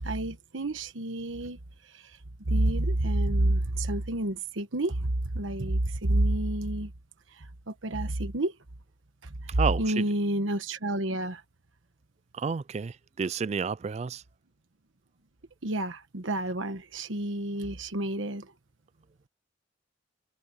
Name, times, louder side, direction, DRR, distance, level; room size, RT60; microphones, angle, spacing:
voice 1, 0.0-2.2 2.5-6.9 7.3-8.6 9.2-11.4 15.6-18.5, right 1 dB, 80° right, 1.2 m, -29 dB
voice 2, 9.6-10.1 12.3-14.2, right 5 dB, 35° right, 0.3 m, -30 dB
head